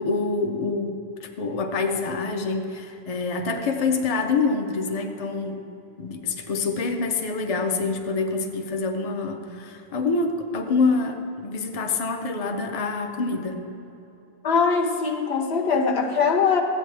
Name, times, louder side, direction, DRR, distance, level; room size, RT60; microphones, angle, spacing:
voice 1, 0.0-5.6 6.0-13.6, left 4 dB, 40° left, 5 dB, 0.7 m, -26 dB
voice 2, 14.4-16.6, left 5 dB, 75° left, 3 dB, 1.1 m, -21 dB
14.0 x 8.4 x 3.3 m, 2.9 s
omnidirectional pair, 1.0 m